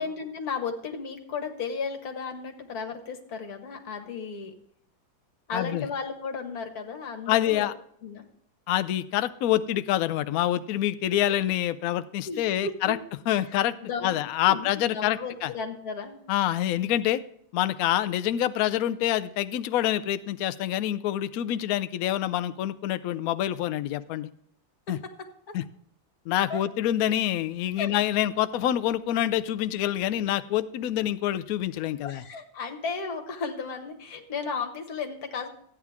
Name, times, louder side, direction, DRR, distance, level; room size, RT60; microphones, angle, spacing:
voice 1, 0.0-4.5 5.5-7.7 8.0-8.3 12.3-12.9 13.8-14.2 14.5-16.2 24.9-25.6 26.5-26.6 27.8-27.9 32.0-35.5, left 5 dB, 55° left, 3 dB, 1.8 m, -34 dB
voice 2, 5.5-5.8 7.3-7.7 8.7-13.0 13.3-13.7 14.0-15.5 16.3-17.2 17.5-24.3 24.9-25.0 25.5-25.6 26.3-32.2, left 12 dB, 85° left, 13 dB, 0.7 m, -26 dB
13.5 x 9.6 x 3.6 m, 0.68 s
omnidirectional pair, 2.1 m